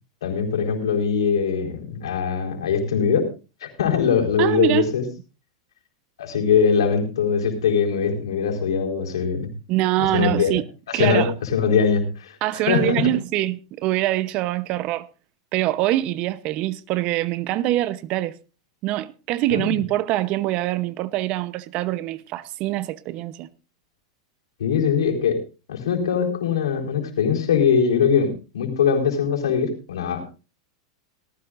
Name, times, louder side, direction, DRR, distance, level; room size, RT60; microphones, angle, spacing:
voice 1, 0.2-3.3 3.6-5.0 6.2-9.5 10.0-10.5 10.9-13.1 19.5-19.8 24.6-25.4 25.7-30.2, left 6 dB, 85° left, 4.2 m, -22 dB
voice 2, 4.4-4.9 9.7-10.7 10.9-11.3 12.4-15.1 15.5-18.3 18.8-23.5, right 15 dB, 45° right, 0.8 m, -24 dB
18.5 x 15.0 x 2.5 m
hypercardioid pair, 120°, 3 cm